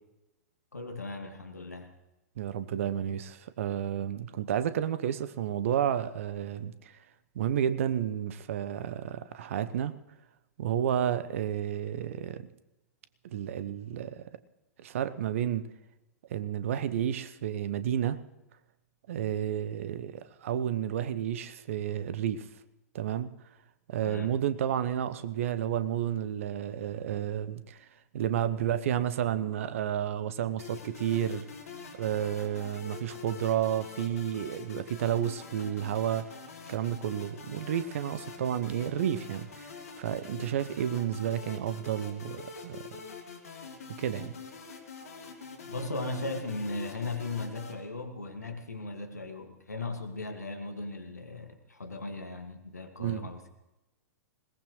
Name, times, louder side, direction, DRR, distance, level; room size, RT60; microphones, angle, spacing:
voice 1, 0.7-1.9 24.0-24.4 45.7-53.4, left 2 dB, 80° left, 1.9 m, -37 dB
voice 2, 2.4-7.0 7.3-9.9 10.6-12.5 13.2-14.3 14.8-15.7 16.3-18.2 19.1-22.5 22.9-23.3 23.9-27.8 28.1-31.5 31.9-36.3 36.7-42.8 43.9-44.3 53.0-53.3, right 10 dB, 55° right, 0.9 m, -31 dB
sound 1, 30.6-47.7, left 5 dB, 65° left, 2.3 m, -45 dB
21.0 x 18.5 x 3.2 m
figure-of-eight pair, 105°, 9 cm